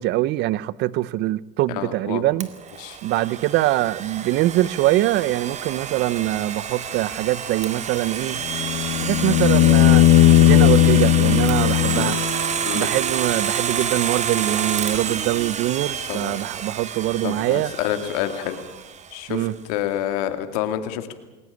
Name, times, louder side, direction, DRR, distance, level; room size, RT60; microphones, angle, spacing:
voice 1, 0.0-2.5 3.0-8.4 9.0-10.1 10.4-12.2 12.7-17.7 19.3-19.5, right 16 dB, 65° right, 0.8 m, -23 dB
voice 2, 1.7-2.2 2.8-3.0 11.9-12.1 12.7-12.9 16.1-16.5 17.2-18.6 19.1-21.1, left 11 dB, 90° left, 2.3 m, -28 dB
Domestic sounds home sounds, 2.4-19.2, right 7 dB, 35° right, 2.1 m, -29 dB
sound 1, 8.4-12.5 14.9-15.0, left 12 dB, 70° left, 1.2 m, -16 dB
20.5 x 19.5 x 8.4 m
supercardioid pair, 110°, 19 cm